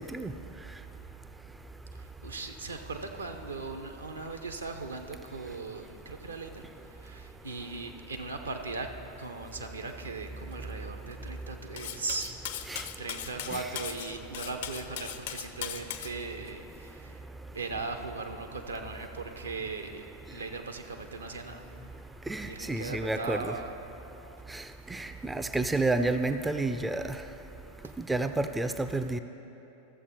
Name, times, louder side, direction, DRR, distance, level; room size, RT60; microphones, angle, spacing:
voice 1, 1.9-8.9 9.2-12.3 13.0-17.2 17.5-21.7 22.4-23.8 27.8-27.9, right 3 dB, 75° right, 5 dB, 0.7 m, -39 dB
Cutlery silverware, 11.8-16.1, left 10 dB, 55° left, 0.5 m, -38 dB
voice 2, 22.3-23.5 24.5-24.6 24.9-27.2 28.0-29.2, right 2 dB, 10° right, 9 dB, 0.3 m, -30 dB
13.5 x 7.1 x 4.2 m, 2.9 s
figure-of-eight pair, 90°, 0 cm